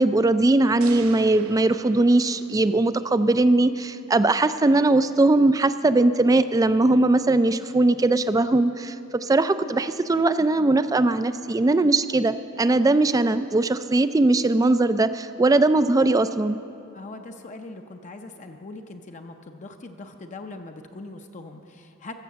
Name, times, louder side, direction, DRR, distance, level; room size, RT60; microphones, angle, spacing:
voice 1, 0.0-16.6, right 2 dB, 15° right, 13 dB, 0.3 m, -20 dB
sound 1, 0.8-3.1, right 4 dB, 90° right, 0.5 m, -41 dB
voice 2, 16.9-22.1, left 2 dB, 35° left, 5 dB, 0.6 m, -41 dB
14.5 x 7.2 x 6.9 m, 2.6 s
head